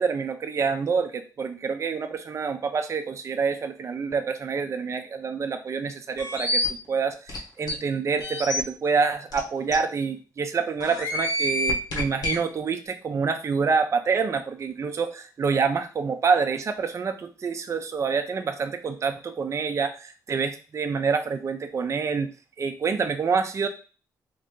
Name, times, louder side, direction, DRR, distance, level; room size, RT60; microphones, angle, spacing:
voice 1, 0.0-22.3 22.6-23.7, right 5 dB, 45° right, 6 dB, 0.5 m, -27 dB
sound 1, 6.2-6.7 7.3-7.4 7.7-7.8 8.2-8.6 9.3-9.4 9.7-9.8 10.8-12.4, left 1 dB, 70° left, 1.1 m, -27 dB
3.1 x 2.6 x 3.7 m, 0.36 s
cardioid pair, 75°, 7 cm